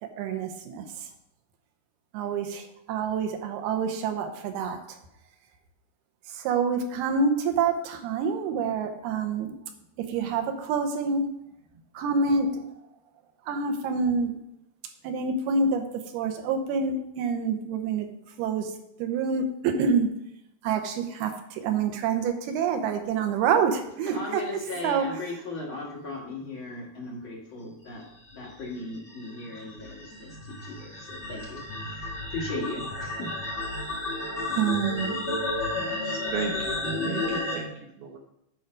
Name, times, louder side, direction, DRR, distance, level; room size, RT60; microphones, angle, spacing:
voice 1, 0.0-1.1 2.1-5.0 6.3-9.5 10.0-11.3 11.9-12.7 13.5-14.4 15.0-18.1 18.4-20.1 20.6-24.4 24.8-25.1 34.6-35.2, right 5 dB, 90° right, 6 dB, 2.9 m, -27 dB
voice 2, 24.0-33.3, left 2 dB, 45° left, -4 dB, 1.9 m, -37 dB
sound 1, 28.3-37.6, left 2 dB, 20° left, 2.3 m, -32 dB
voice 3, 35.8-38.2, right 5 dB, 70° right, 2 dB, 2.0 m, -36 dB
9.3 x 4.6 x 6.4 m, 0.80 s
omnidirectional pair, 4.5 m